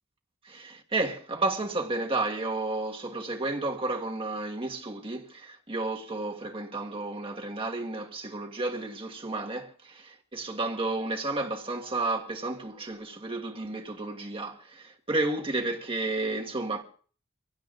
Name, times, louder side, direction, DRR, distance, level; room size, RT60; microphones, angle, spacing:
voice 1, 0.4-16.8, right 2 dB, 25° right, 1.6 m, -32 dB
26.0 x 17.0 x 2.5 m
head